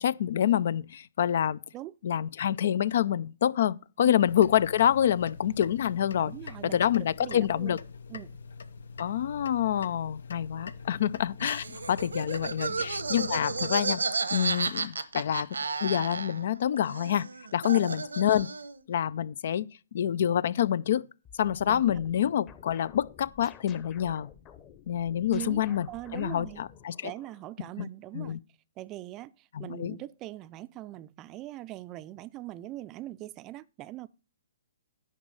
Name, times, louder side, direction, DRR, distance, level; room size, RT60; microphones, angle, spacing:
voice 1, 0.0-1.6 2.0-6.3 6.6-7.8 9.0-14.0 14.3-15.5 15.8-17.2 17.5-18.5 18.9-19.7 19.9-21.1 21.4-24.3 24.9-25.9 26.1-27.1 27.8-27.9 28.1-28.4 29.5-30.0, left 10 dB, 60° left, 0.4 m, -27 dB
sound 1, 4.3-13.8, left 4 dB, 75° left, 0.8 m, -44 dB
voice 2, 6.2-6.8 7.2-7.8 8.1-8.4 12.7-12.8 17.7-17.8 21.7-22.0 25.3-26.6 27.0-28.4 28.8-34.1, right 15 dB, 25° right, 0.4 m, -41 dB
Laughter, 11.4-16.6 16.8-18.8, right 4 dB, 90° right, 1.0 m, -33 dB
sound 2, 21.3-27.5, left 8 dB, 25° left, 1.0 m, -52 dB
10.0 x 5.4 x 5.3 m
hypercardioid pair, 140°, 0 cm